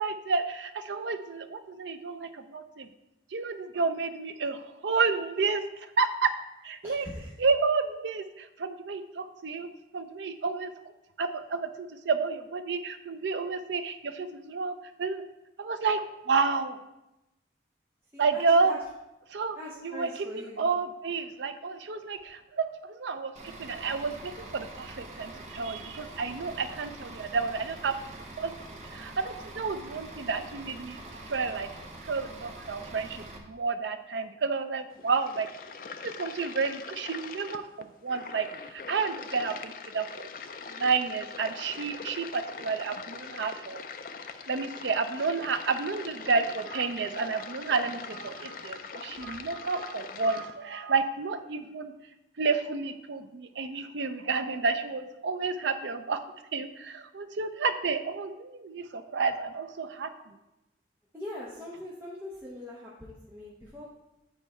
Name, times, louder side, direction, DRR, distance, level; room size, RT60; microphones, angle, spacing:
voice 1, 0.0-2.9 3.3-6.3 6.6-7.1 7.4-9.7 9.9-10.7 11.2-15.2 15.6-16.8 18.2-18.7 19.3-19.6 19.8-23.3 23.6-28.0 28.4-28.5 28.9-31.7 32.1-35.5 36.0-40.3 40.7-43.8 44.5-51.9 52.4-56.2 56.5-60.3, right 4 dB, 85° right, 9 dB, 0.5 m, -30 dB
voice 2, 6.8-7.3 18.1-18.8 19.6-20.6 49.3-49.4 61.1-63.9, left 1 dB, 15° right, -7 dB, 0.9 m, -42 dB
Bus / Idling, 23.4-33.4, right 2 dB, 40° right, 1.0 m, -45 dB
sound 1, 34.9-50.5, left 5 dB, 50° left, 0.4 m, -42 dB
8.8 x 4.5 x 4.3 m, 0.92 s
head